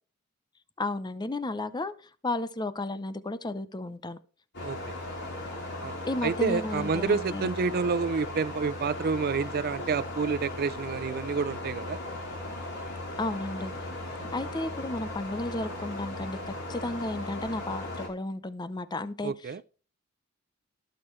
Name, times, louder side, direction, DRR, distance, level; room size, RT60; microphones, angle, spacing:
voice 1, 0.8-1.9 2.2-4.2 6.0-7.5 13.2-13.7 14.3-19.7, left 2 dB, 20° left, 0.6 m, -33 dB
sound 1, 4.5-18.1, left 2 dB, 55° left, 4.5 m, -37 dB
voice 2, 4.6-4.9 5.8-6.0 6.2-12.0 19.2-19.6, right 5 dB, 45° right, 0.4 m, -29 dB
19.0 x 6.5 x 3.2 m
head